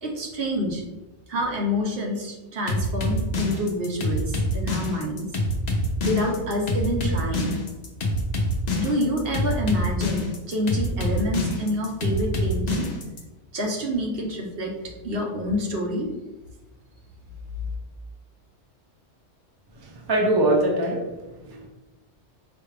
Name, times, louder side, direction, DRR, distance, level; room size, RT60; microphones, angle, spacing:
voice 1, 0.0-0.8 1.3-5.2 6.0-7.5 8.7-12.9 13.5-16.1, left 1 dB, 60° right, 0 dB, 0.9 m, -27 dB
sound 1, 2.7-13.2, left 1 dB, 50° left, 0.6 m, -26 dB
voice 2, 19.8-21.1 21.4-21.7, right 1 dB, 30° right, 0 dB, 0.5 m, -23 dB
5.0 x 2.3 x 3.2 m, 1.0 s
omnidirectional pair, 1.2 m